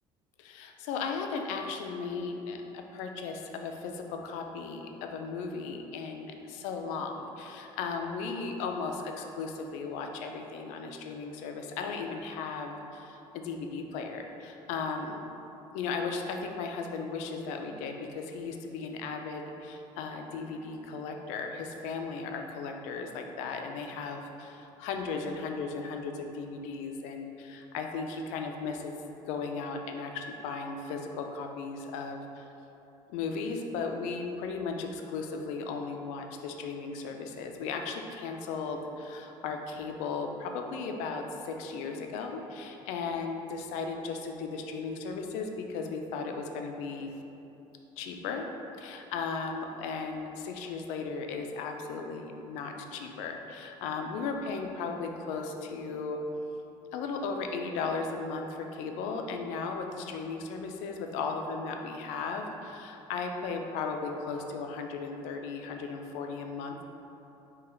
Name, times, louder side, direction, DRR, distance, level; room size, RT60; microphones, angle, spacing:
voice 1, 0.4-15.2 15.7-28.9 29.3-32.4 33.1-47.1 48.0-48.5 48.8-56.2 56.9-66.8, left 4 dB, 90° left, 4 dB, 0.4 m, -36 dB
3.8 x 2.9 x 4.3 m, 2.9 s
cardioid pair, 140°, 12 cm